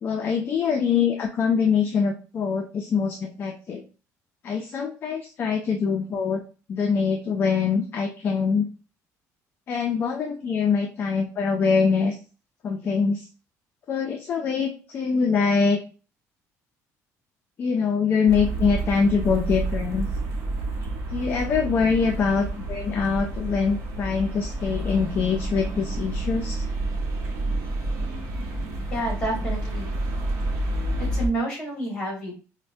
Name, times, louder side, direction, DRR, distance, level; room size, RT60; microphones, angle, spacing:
voice 1, 0.0-3.8 4.4-6.4 6.7-8.7 9.7-12.1 12.6-13.3 13.9-15.8 17.6-20.0 21.1-26.6, left 5 dB, 35° left, 3 dB, 0.4 m, -24 dB
sound 1, 18.3-31.3, right 2 dB, 55° right, 0.8 m, -29 dB
voice 2, 28.9-29.9 31.0-32.4, right 1 dB, 15° left, -1 dB, 1.6 m, -29 dB
4.4 x 2.1 x 2.5 m, 0.35 s
cardioid pair, 170°, 6 cm